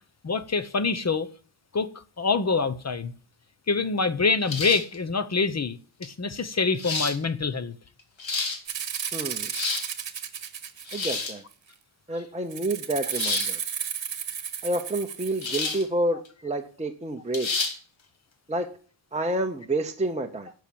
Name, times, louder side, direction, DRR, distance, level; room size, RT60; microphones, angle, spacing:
voice 1, 0.2-1.3 1.7-3.1 3.7-7.7 12.1-12.2, left 4 dB, 35° left, 0.8 m, -26 dB
sound 1, 4.5-5.0 6.0-6.1 6.8-7.2 8.0-8.6 9.3-9.9 10.9-11.4 13.1-13.5 15.4-15.8 16.2-16.3 17.3-17.8, left 4 dB, 70° left, 2.4 m, -29 dB
Rattle (instrument), 8.7-11.5 12.5-15.7, right 8 dB, 65° right, 1.2 m, -33 dB
voice 2, 9.1-9.5 10.9-11.4 12.1-13.6 14.6-17.6 18.5-18.7 19.1-20.5, right 1 dB, 15° right, 0.8 m, -29 dB
11.0 x 6.1 x 8.6 m
wide cardioid pair, 175°, 47 cm